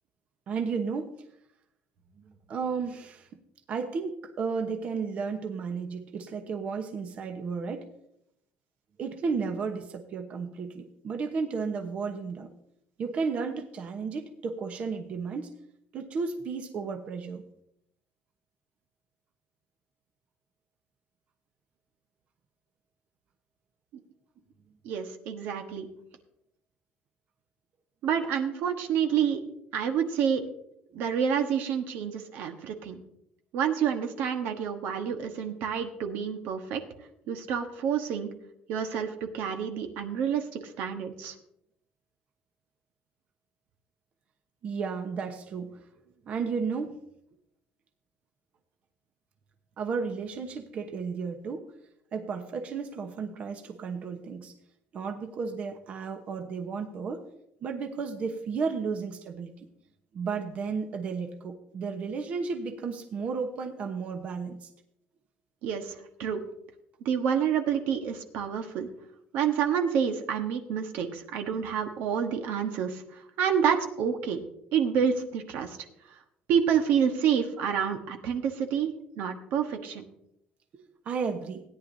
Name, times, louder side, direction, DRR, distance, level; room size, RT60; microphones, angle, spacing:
voice 1, 0.5-1.1 2.2-3.3 3.7-7.9 9.0-12.5 13.0-15.5 15.9-17.4 44.6-45.8 46.3-46.9 49.8-51.7 52.1-54.5 54.9-57.2 57.6-59.7 60.1-64.7 80.7-81.6, right 5 dB, 40° right, 5 dB, 1.0 m, -33 dB
voice 2, 24.8-25.9 28.0-29.4 29.7-30.4 30.9-33.0 33.5-36.8 37.3-38.3 38.7-41.3 65.6-66.4 67.0-68.9 69.3-74.4 74.7-75.8 76.5-80.0, right 7 dB, 70° right, 5 dB, 1.2 m, -28 dB
17.0 x 10.0 x 2.7 m, 0.77 s
cardioid pair, 145°, 3 cm